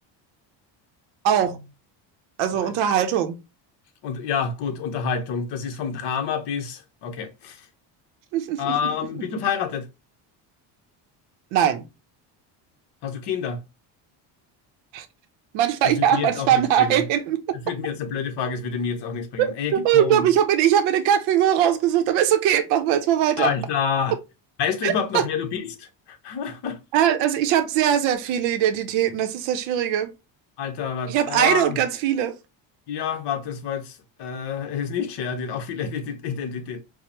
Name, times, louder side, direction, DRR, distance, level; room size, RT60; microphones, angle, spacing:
voice 1, 1.2-1.6 2.4-3.4 8.3-8.9 11.5-11.9 14.9-15.1 15.5-17.6 19.4-23.5 24.8-25.2 26.9-30.1 31.1-32.3, right 10 dB, 85° right, 0.7 m, -21 dB
voice 2, 4.0-7.6 8.6-9.8 13.0-13.6 15.8-17.1 17.5-20.3 23.4-24.2 24.6-25.9 26.2-26.8 30.6-31.8 32.9-36.8, left 7 dB, 60° left, 1.0 m, -28 dB
4.7 x 2.1 x 2.8 m
cardioid pair, 130°, 46 cm